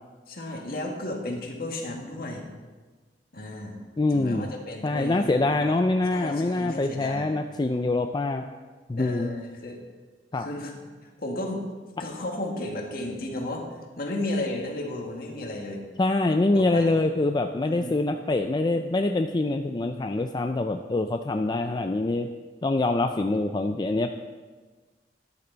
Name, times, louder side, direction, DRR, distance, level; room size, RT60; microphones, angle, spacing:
voice 1, 0.3-2.5 3.3-3.8 4.1-5.8 6.1-7.3 9.0-9.8 10.3-10.7 11.0-11.7 12.0-13.7 14.0-15.8 16.4-17.0 17.7-18.0, left 1 dB, 60° left, 1 dB, 1.8 m, -33 dB
voice 2, 4.0-4.5 4.8-8.5 8.9-9.3 10.3-10.5 16.0-22.3 22.6-24.1, left 2 dB, 25° left, 6 dB, 0.4 m, -25 dB
13.5 x 9.9 x 4.0 m, 1.4 s
head